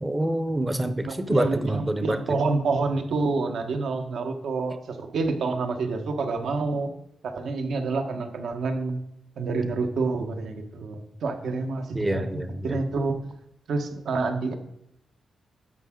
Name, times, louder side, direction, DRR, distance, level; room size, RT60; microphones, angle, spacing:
voice 1, 0.0-2.4 11.9-12.8, right 1 dB, 10° right, 10 dB, 0.7 m, -26 dB
voice 2, 1.0-6.9 7.2-9.0 9.4-12.2 12.6-13.2 13.7-14.5, right 3 dB, 70° right, 5 dB, 1.3 m, -28 dB
10.5 x 7.3 x 3.8 m, 0.82 s
wide cardioid pair, 155°, 0 cm